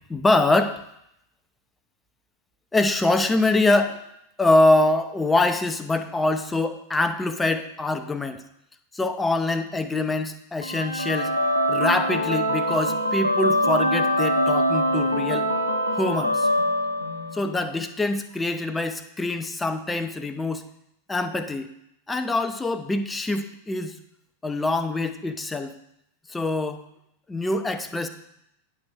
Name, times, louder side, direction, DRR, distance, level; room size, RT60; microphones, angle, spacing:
voice 1, 0.1-0.8 2.7-4.0 4.4-8.4 8.9-11.3 11.7-15.5 16.0-16.5 17.3-20.6 21.1-21.7 22.1-24.0 24.4-25.7 26.3-26.8 27.3-28.1, left 2 dB, 10° left, 8 dB, 0.6 m, -24 dB
sound 1, 10.6-17.6, equal, 90° left, 0.9 m, -23 dB
9.4 x 4.4 x 6.3 m, 0.78 s
figure-of-eight pair, 90°, 0 cm